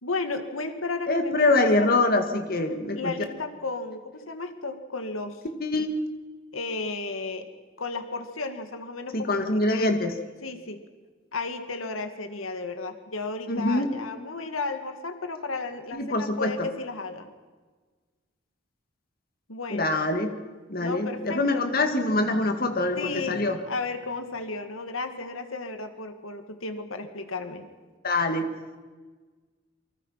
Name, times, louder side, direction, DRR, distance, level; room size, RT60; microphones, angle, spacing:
voice 1, 0.0-1.9 3.0-5.4 6.5-7.5 7.8-9.4 9.7-10.1 10.4-10.8 11.3-17.3 19.5-19.9 20.8-21.6 22.9-27.7, left 3 dB, 85° left, 7 dB, 2.2 m, -34 dB
voice 2, 1.1-3.1 5.6-5.9 9.1-10.1 13.5-13.9 15.9-16.7 19.7-20.3 20.7-23.6 28.0-28.5, left 2 dB, 45° left, 5 dB, 2.2 m, -24 dB
28.0 x 25.0 x 5.8 m, 1.4 s
head